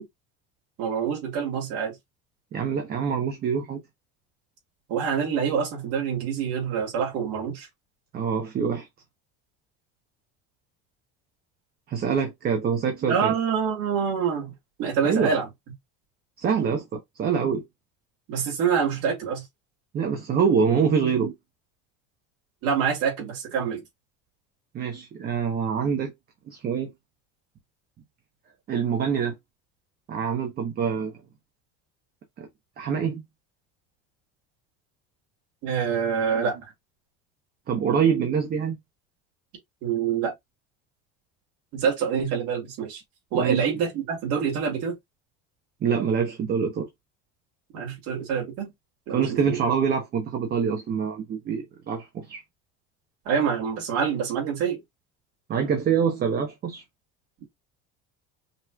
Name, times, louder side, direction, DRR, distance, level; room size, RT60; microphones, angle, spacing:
voice 1, 0.8-1.9 4.9-7.7 13.1-14.5 14.8-15.5 18.3-19.4 22.6-23.8 35.6-36.6 39.8-40.3 41.7-43.0 43.3-45.0 47.7-48.7 49.1-49.6 53.3-54.8, right 7 dB, 55° right, 2.6 m, -26 dB
voice 2, 2.5-3.8 8.1-8.9 11.9-13.3 15.0-15.3 16.4-17.6 19.9-21.3 24.7-26.1 26.5-26.9 28.7-29.3 30.1-31.1 32.4-32.5 32.8-33.2 37.7-38.8 43.3-43.6 45.8-46.9 49.1-52.4 55.5-56.8, right 6 dB, 30° right, 1.0 m, -25 dB
5.4 x 3.1 x 2.3 m
cardioid pair, 165°, 30 cm